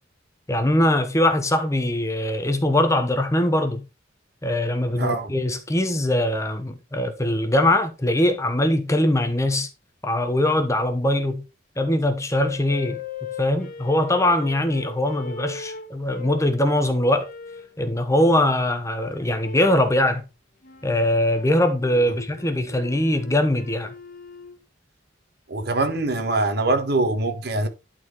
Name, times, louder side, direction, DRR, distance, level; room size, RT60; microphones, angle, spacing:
voice 1, 0.5-3.9 4.4-9.7 10.0-11.4 11.8-13.0 13.4-17.3 17.8-20.2 20.8-23.9, left 1 dB, 15° left, 1.1 m, -22 dB
voice 2, 5.0-5.3 25.5-27.7, right 2 dB, 55° right, 1.6 m, -23 dB
sound 1, 12.3-16.6 17.2-17.8 19.4-20.0 20.6-24.6, left 5 dB, 45° left, 1.7 m, -39 dB
11.5 x 4.7 x 3.9 m
head